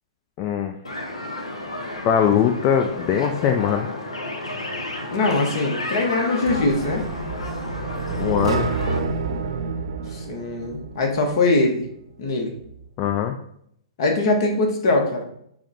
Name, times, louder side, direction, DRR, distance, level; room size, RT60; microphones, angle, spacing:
voice 1, 0.4-0.8 2.0-3.9 8.1-8.7 13.0-13.3, left 8 dB, 35° left, 4 dB, 0.3 m, -21 dB
sound 1, 0.8-9.0, left 1 dB, 85° left, 0.7 m, -32 dB
voice 2, 5.1-7.0 10.1-11.8 12.2-12.5 14.0-15.2, left 2 dB, 55° left, 2 dB, 1.0 m, -22 dB
sound 2, 6.5-11.4, right 4 dB, 70° right, 0.4 m, -28 dB
4.7 x 2.2 x 3.9 m, 0.70 s
figure-of-eight pair, 110°, 3 cm